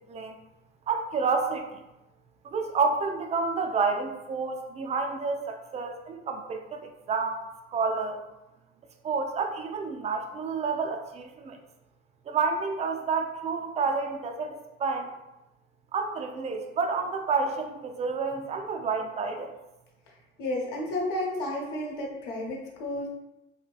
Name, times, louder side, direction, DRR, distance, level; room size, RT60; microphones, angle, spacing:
voice 1, 0.9-1.8 2.4-7.4 7.7-8.2 9.0-11.6 12.3-15.1 15.9-19.5, right 4 dB, 20° right, 3 dB, 0.3 m, -29 dB
voice 2, 20.1-23.1, left 1 dB, 60° left, -2 dB, 0.9 m, -32 dB
2.8 x 2.8 x 2.3 m, 0.97 s
figure-of-eight pair, 60°, 34 cm